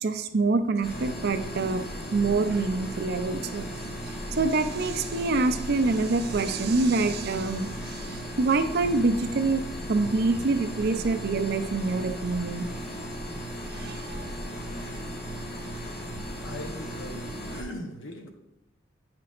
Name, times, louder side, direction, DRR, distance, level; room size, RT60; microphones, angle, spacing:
voice 1, 0.0-3.8 4.1-9.6 9.9-12.7 13.7-14.3, right 3 dB, 50° right, 9 dB, 0.5 m, -26 dB
sound 1, 0.8-17.6, equal, 45° left, 1.7 m, -36 dB
voice 2, 16.4-18.3, left 1 dB, 65° left, 3 dB, 1.1 m, -39 dB
8.6 x 6.0 x 2.5 m, 0.91 s
head